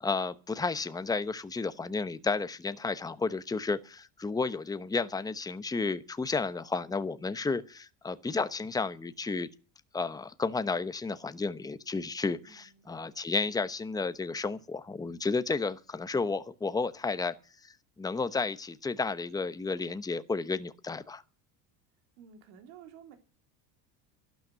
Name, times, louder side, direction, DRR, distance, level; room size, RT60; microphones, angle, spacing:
voice 1, 0.0-9.5 9.9-17.3 17.6-21.2, left 4 dB, 10° left, 0.9 m, -32 dB
voice 2, 12.4-13.1 22.2-23.2, right 8 dB, 75° right, 3.5 m, -53 dB
12.0 x 12.0 x 9.3 m
supercardioid pair, 120°, 41 cm